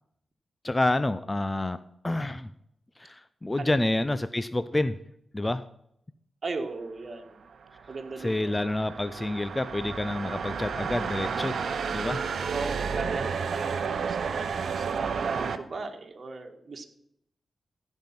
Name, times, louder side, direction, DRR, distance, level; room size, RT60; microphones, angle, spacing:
voice 1, 0.6-1.8 2.0-2.5 3.0-5.0 5.3-5.6 8.2-11.6 11.9-12.2, left 2 dB, 20° left, 13 dB, 0.5 m, -28 dB
voice 2, 6.4-7.4 7.9-8.6 12.5-16.9, right 3 dB, 50° right, 4 dB, 1.6 m, -37 dB
sound 1, 7.6-15.6, right 6 dB, 70° right, 0.7 m, -32 dB
15.5 x 5.4 x 6.0 m, 0.73 s
cardioid pair, 75°, 0 cm